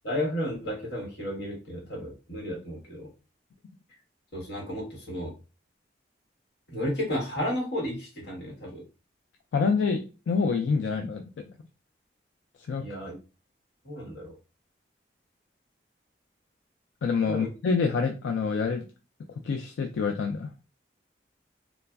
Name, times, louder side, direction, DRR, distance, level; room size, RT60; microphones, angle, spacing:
voice 1, 0.0-3.1 4.3-5.3 6.7-8.8 12.8-13.2 13.8-14.4 17.3-17.5, equal, 70° left, -2 dB, 1.1 m, -33 dB
voice 2, 9.5-11.4 12.7-12.8 17.0-18.9 19.4-20.5, left 5 dB, 90° left, 4 dB, 0.3 m, -27 dB
3.2 x 2.0 x 2.2 m, 0.32 s
head